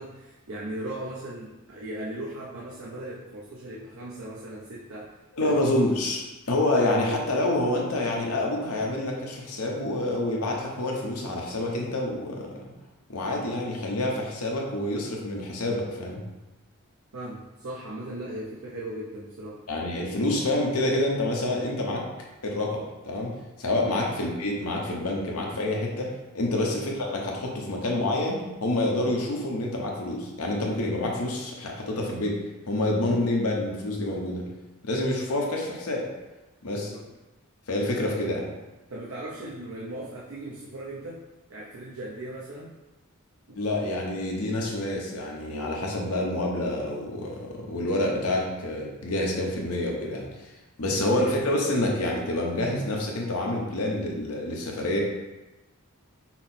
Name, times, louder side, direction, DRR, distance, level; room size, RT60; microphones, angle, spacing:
voice 1, 0.0-5.1 5.4-5.6 17.1-19.6 23.8-24.0 26.4-26.6 36.7-37.1 38.0-38.2 38.9-41.2 41.5-42.7 43.5-43.6 50.9-51.1, right 1 dB, 70° right, -5 dB, 0.6 m, -38 dB
voice 2, 5.3-6.2 6.5-12.7 13.1-16.2 19.7-22.0 22.4-23.3 23.6-26.1 26.3-32.4 32.7-34.4 34.8-36.0 36.6-36.9 37.7-38.4 43.6-50.2 50.8-55.0, left 1 dB, 85° left, -1 dB, 0.9 m, -27 dB
5.7 x 2.0 x 4.3 m, 1.1 s
head